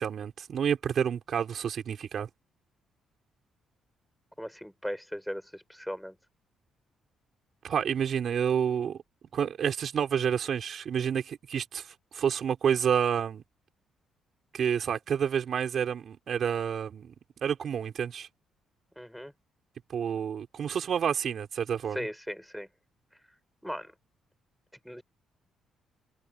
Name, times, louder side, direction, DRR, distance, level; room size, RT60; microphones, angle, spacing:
voice 1, 0.0-2.3 7.6-9.0 9.3-13.4 14.5-17.1 17.4-18.3 19.9-22.0, right 8 dB, 60° right, 5.0 m, -29 dB
voice 2, 4.4-6.2 19.0-19.3 21.9-22.7 23.6-23.9 24.8-25.0, equal, ahead, 7.3 m, -37 dB
cardioid pair, 90°, 0 cm